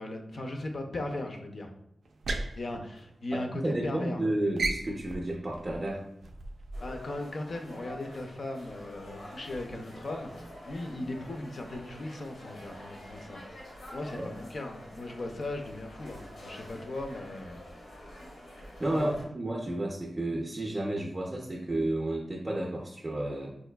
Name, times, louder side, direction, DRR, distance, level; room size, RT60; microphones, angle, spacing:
voice 1, 0.0-1.7 2.6-4.2 6.8-13.4 13.9-17.6 18.9-19.1, left 2 dB, 50° left, 3 dB, 0.4 m, -38 dB
sound 1, 2.0-3.7 4.0-4.2 4.5-7.1, right 2 dB, 90° right, 0.3 m, -36 dB
voice 2, 3.3-6.1 14.2-14.3 18.8-23.5, right 1 dB, 25° right, -2 dB, 0.4 m, -32 dB
sound 2, 6.7-19.2, left 1 dB, 90° left, 1.1 m, -47 dB
4.6 x 2.5 x 2.2 m, 0.76 s
wide cardioid pair, 165°, 0 cm